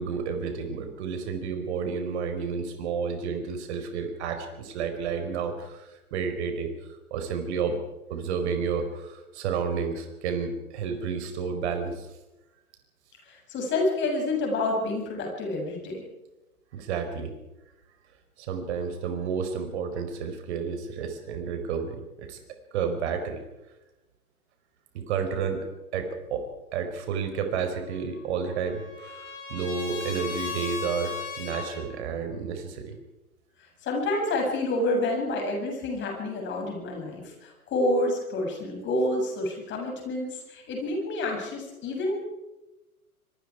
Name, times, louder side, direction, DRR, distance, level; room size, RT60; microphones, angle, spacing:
voice 1, 0.0-6.7 7.1-7.8 8.1-12.1 16.7-17.3 18.4-22.4 22.7-23.4 24.9-25.7 25.9-26.4 26.7-33.0, right 6 dB, 50° right, 6 dB, 5.0 m, -31 dB
voice 2, 13.3-16.0 33.8-42.2, left 2 dB, 25° left, 1 dB, 7.7 m, -28 dB
Trumpet, 28.0-31.8, left 5 dB, 50° left, 7.5 m, -37 dB
25.5 x 24.0 x 4.9 m, 1.0 s
figure-of-eight pair, 105°, 44 cm